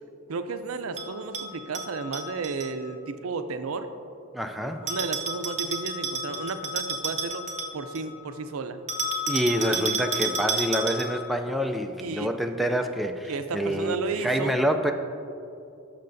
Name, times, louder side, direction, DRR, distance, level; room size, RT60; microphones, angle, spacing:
voice 1, 0.3-3.9 4.8-7.5 7.7-8.8 12.0-12.3 13.3-14.6, right 4 dB, 70° right, 9 dB, 0.5 m, -33 dB
Bell, 1.0-2.7 4.9-8.1 8.9-11.3, right 2 dB, 35° right, 0.8 m, -31 dB
voice 2, 4.3-4.9 9.3-14.9, equal, ahead, 4 dB, 0.3 m, -27 dB
15.0 x 6.6 x 2.6 m, 2.7 s
head